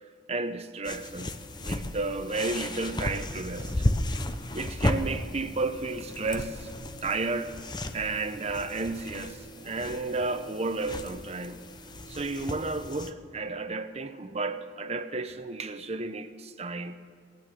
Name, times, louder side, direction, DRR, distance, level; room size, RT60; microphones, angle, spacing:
voice 1, 0.3-3.9 4.5-6.7 7.0-7.6 7.9-11.6 12.1-16.9, right 3 dB, 35° right, 0.8 m, -32 dB
sound 1, 0.8-13.1, left 1 dB, 25° left, 0.8 m, -34 dB
19.5 x 9.4 x 6.4 m
head